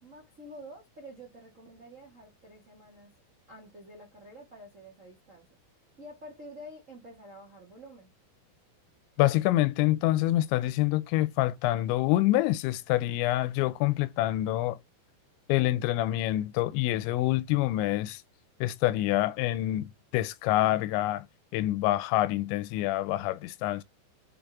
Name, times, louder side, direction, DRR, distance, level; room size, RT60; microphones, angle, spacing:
voice 1, 0.0-3.1 3.5-5.5 6.0-8.1, equal, 50° right, 0.9 m, -48 dB
voice 2, 9.2-14.8 15.5-18.2 18.6-21.3 21.5-23.8, left 15 dB, 85° left, 2.9 m, -26 dB
7.4 x 4.0 x 3.5 m
omnidirectional pair, 5.2 m